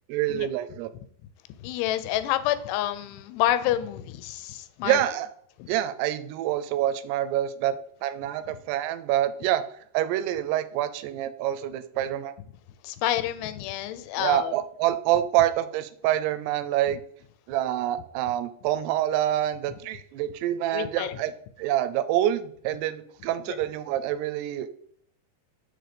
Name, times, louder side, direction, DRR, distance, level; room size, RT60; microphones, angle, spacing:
voice 1, 0.1-0.9 4.8-5.3 5.7-7.7 8.0-9.6 9.9-12.3 14.2-17.0 17.5-21.3 21.6-24.7, right 12 dB, 90° right, 12 dB, 2.7 m, -26 dB
voice 2, 1.6-5.0 5.6-5.7 12.8-14.5 20.7-21.2 23.4-23.5, left 13 dB, 90° left, 12 dB, 2.7 m, -28 dB
6.5 x 4.0 x 5.0 m, 0.64 s
omnidirectional pair, 4.7 m